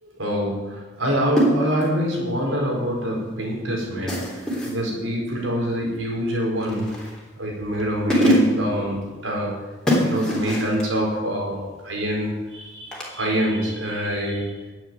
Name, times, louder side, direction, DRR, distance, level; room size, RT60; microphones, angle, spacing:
voice 1, 0.0-7.1 7.4-9.6 10.0-14.6, equal, 90° right, -1 dB, 4.6 m, -25 dB
sound 1, 1.4-2.0 4.1-4.8 6.6-7.2 7.8-7.9 8.1-8.7 9.9-10.9 12.9-13.1, equal, 5° left, 3.3 m, -22 dB
12.5 x 8.2 x 9.5 m, 1.2 s
head